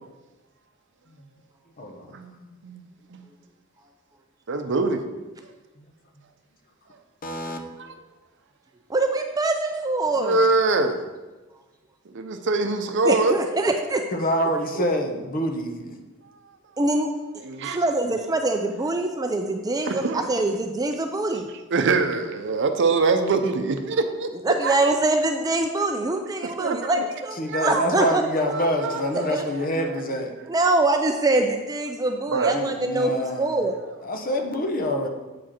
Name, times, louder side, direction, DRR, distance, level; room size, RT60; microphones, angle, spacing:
voice 1, 1.8-2.6 5.8-5.9 7.2-7.6 14.1-16.0 27.3-30.3 32.5-33.6 34.0-35.1, equal, 40° left, 4 dB, 0.8 m, -27 dB
voice 2, 4.5-5.0 7.8-7.9 10.2-11.0 12.1-13.3 17.4-17.8 19.9-20.3 21.7-24.3 24.6-24.8 26.6-27.0 27.5-27.8 28.5-29.3 29.8-29.9 32.3-32.5, right 3 dB, 60° right, 7 dB, 0.6 m, -24 dB
voice 3, 8.9-10.4 13.0-14.0 16.8-17.1 17.6-21.5 24.4-28.2 29.3-29.5 30.5-33.8, right 2 dB, 15° right, 5 dB, 0.4 m, -24 dB
8.1 x 5.0 x 4.4 m, 1.2 s
head